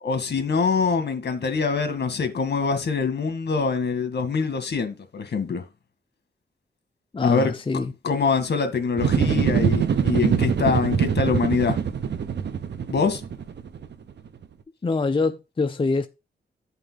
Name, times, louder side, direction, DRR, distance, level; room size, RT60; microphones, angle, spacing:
voice 1, 0.0-5.6 7.2-7.5 8.0-11.8 12.9-13.2, left 5 dB, 70° left, 1.8 m, -24 dB
voice 2, 7.1-7.9 14.8-16.1, left 3 dB, 30° left, 0.6 m, -24 dB
sound 1, 9.0-14.1 14.4-14.5, right 7 dB, 75° right, 0.9 m, -23 dB
9.9 x 5.5 x 4.0 m
cardioid pair, 85°, 18 cm